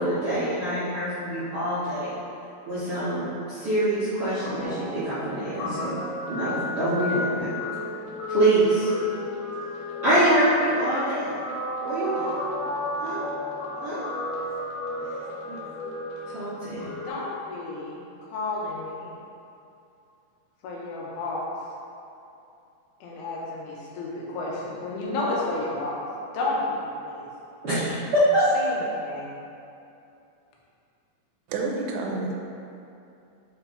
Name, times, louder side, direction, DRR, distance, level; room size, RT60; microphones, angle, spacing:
voice 1, 0.0-2.2 2.7-5.9 6.3-7.5 8.3-8.9 10.0-11.3 11.8-12.2 13.0-13.2 13.8-14.0 15.5-15.6 16.3-16.8 27.6-28.5, right 1 dB, 60° right, -14 dB, 1.4 m, -24 dB
Guitar, 4.4-17.1, left 1 dB, 65° left, 2.6 m, -33 dB
voice 2, 17.0-18.0 18.3-19.1 20.6-21.5 23.0-26.1 26.3-27.3 28.5-29.3, left 2 dB, 80° left, -4 dB, 2.9 m, -31 dB
voice 3, 31.5-32.3, right 3 dB, 90° right, 0 dB, 2.8 m, -28 dB
9.1 x 4.5 x 2.8 m, 2.6 s
omnidirectional pair, 4.7 m